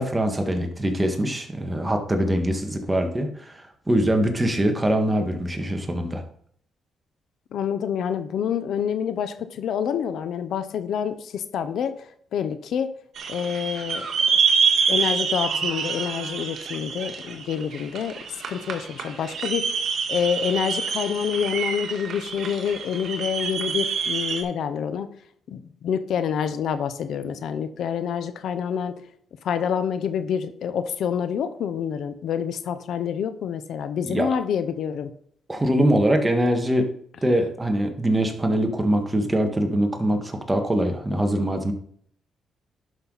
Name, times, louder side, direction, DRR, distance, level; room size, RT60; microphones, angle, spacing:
voice 1, 0.0-6.2 34.0-34.3 35.5-36.9 37.2-41.7, right 1 dB, 15° right, 4 dB, 1.8 m, -23 dB
voice 2, 7.5-12.9 13.3-14.1 14.3-14.4 14.9-19.7 20.1-25.1 25.5-28.9 29.4-35.1, left 8 dB, 75° left, 11 dB, 0.8 m, -27 dB
sound 1, 13.2-24.4, right 5 dB, 65° right, 1.9 m, -26 dB
11.0 x 5.9 x 4.1 m, 0.64 s
cardioid pair, 90°, 0 cm